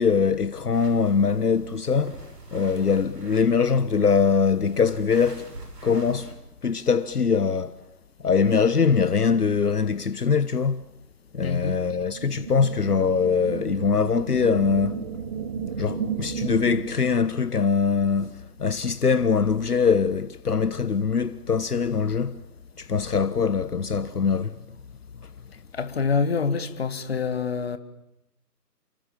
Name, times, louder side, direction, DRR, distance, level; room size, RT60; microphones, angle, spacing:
voice 1, 0.0-2.1 2.5-5.5 5.8-6.3 6.6-7.7 8.2-10.8 11.3-15.0 15.8-22.4 22.8-24.6, left 5 dB, 65° left, 1.2 m, -22 dB
sound 1, 0.7-6.3, right 2 dB, 70° right, 7.3 m, -45 dB
voice 2, 11.4-11.8 25.7-27.8, left 5 dB, 40° left, 2.0 m, -26 dB
sound 2, 12.1-17.1, right 6 dB, 25° right, 1.6 m, -33 dB
29.0 x 26.0 x 7.4 m
figure-of-eight pair, 150°, 49 cm